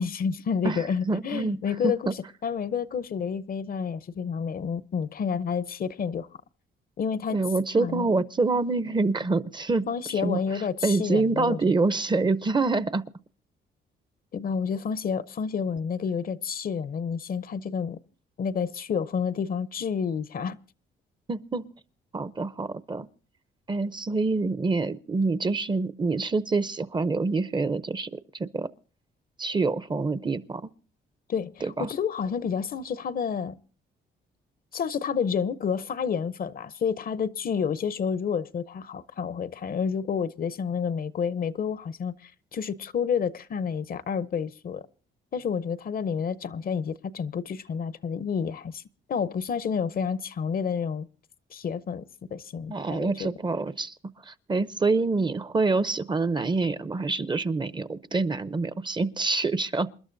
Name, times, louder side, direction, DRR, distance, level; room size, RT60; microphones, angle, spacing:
voice 1, 0.0-6.3 7.0-7.4 7.7-8.1 9.9-11.6 14.3-18.0 18.4-20.6 31.3-33.6 34.7-44.8 45.3-48.8 49.1-51.1 51.5-52.0 52.3-53.3, left 6 dB, 45° left, 0.6 m, -29 dB
voice 2, 0.6-1.6 1.8-2.1 7.3-9.9 10.2-10.4 10.8-13.0 21.3-21.6 22.1-23.1 23.7-28.1 28.4-28.7 29.4-30.6 31.6-31.9 52.7-53.9 54.3-59.9, right 3 dB, 25° right, 0.6 m, -26 dB
27.5 x 11.5 x 2.6 m
cardioid pair, 90°, 20 cm